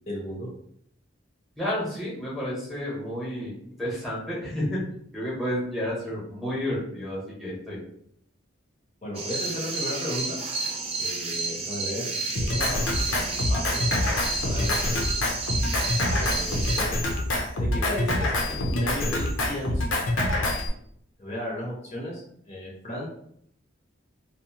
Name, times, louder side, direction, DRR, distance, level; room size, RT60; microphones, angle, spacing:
voice 1, 0.1-0.5 9.0-10.4 11.0-12.1 12.5-13.8 14.4-15.0 16.1-17.0 17.6-19.8 21.2-23.1, equal, 35° left, -4 dB, 0.6 m, -34 dB
voice 2, 1.6-3.5 3.8-4.8 5.1-7.8, equal, ahead, -6 dB, 0.9 m, -31 dB
sound 1, 9.1-16.8, right 3 dB, 30° right, 0.4 m, -31 dB
Drum kit, 12.3-20.7, left 1 dB, 85° left, 0.5 m, -26 dB
2.7 x 2.0 x 2.8 m, 0.68 s
head